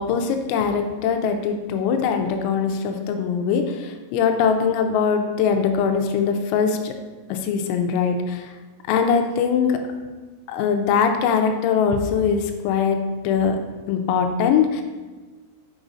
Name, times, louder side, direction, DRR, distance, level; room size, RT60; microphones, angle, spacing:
voice 1, 0.0-7.0 7.3-8.5 8.9-9.8 10.5-13.6 13.9-14.8, left 6 dB, 85° left, 5 dB, 3.3 m, -22 dB
8.7 x 6.0 x 2.6 m, 1.3 s
omnidirectional pair, 6.0 m